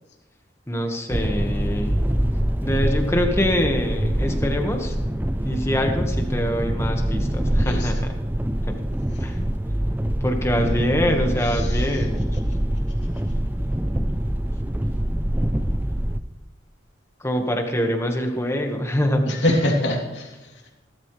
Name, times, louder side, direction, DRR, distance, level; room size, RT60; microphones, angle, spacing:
voice 1, 0.7-1.9 2.6-4.9 5.4-7.9 8.6-8.7 9.2-9.3 10.2-12.2 17.2-19.2, equal, 15° left, 3 dB, 1.5 m, -24 dB
sound 1, 1.1-16.2, equal, 10° right, 0.5 m, -24 dB
voice 2, 7.6-7.9 10.6-12.0 19.3-20.5, left 1 dB, 70° left, -1 dB, 3.1 m, -26 dB
18.0 x 13.0 x 3.3 m, 1.0 s
head